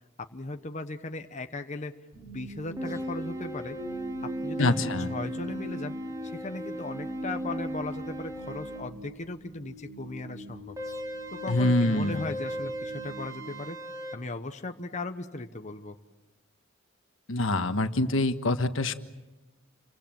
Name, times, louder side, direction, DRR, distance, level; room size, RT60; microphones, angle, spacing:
voice 1, 0.2-2.0 2.3-3.8 4.2-6.0 6.2-10.8 11.3-13.8 14.1-16.0, left 2 dB, 35° left, 7 dB, 1.0 m, -37 dB
sound 1, 2.1-14.3, right 1 dB, 35° right, 5.7 m, -43 dB
sound 2, 2.8-8.8 10.8-14.2, equal, 15° right, 3.1 m, -36 dB
voice 2, 4.6-5.1 11.5-12.3 17.3-18.9, left 2 dB, 75° left, 9 dB, 1.5 m, -25 dB
29.5 x 24.0 x 7.7 m, 1.1 s
head